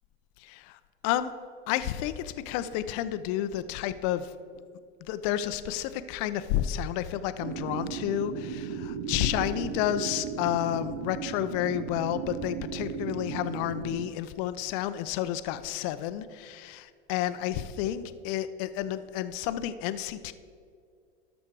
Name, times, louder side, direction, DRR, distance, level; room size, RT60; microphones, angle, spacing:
voice 1, 0.4-1.3 1.7-4.3 5.0-20.3, left 12 dB, 50° left, 12 dB, 0.6 m, -31 dB
sound 1, 7.4-14.1, right 7 dB, 55° right, 0.9 m, -36 dB
13.0 x 6.3 x 4.6 m, 2.3 s
hypercardioid pair, 110°, 36 cm